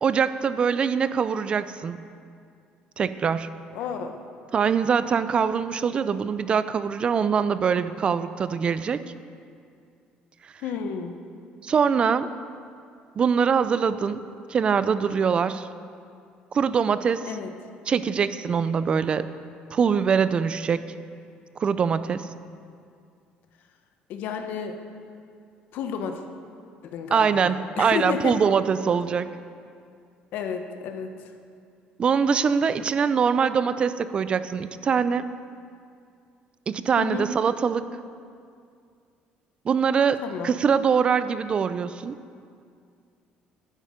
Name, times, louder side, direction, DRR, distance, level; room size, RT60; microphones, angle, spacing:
voice 1, 0.0-2.0 3.0-3.5 4.5-9.0 11.6-12.3 13.2-14.2 14.5-15.7 16.5-17.2 17.9-19.3 19.7-20.8 21.6-22.3 27.1-29.3 32.0-35.3 36.7-37.9 39.7-42.2, right 6 dB, 30° right, 13 dB, 0.4 m, -23 dB
voice 2, 3.7-4.1 10.6-11.2 17.3-17.5 24.1-24.8 25.7-26.2 26.8-28.4 30.3-31.1 37.0-37.2 40.2-40.5, left 7 dB, 65° left, 6 dB, 1.0 m, -31 dB
11.0 x 9.6 x 5.1 m, 2.3 s
cardioid pair, 140°, 3 cm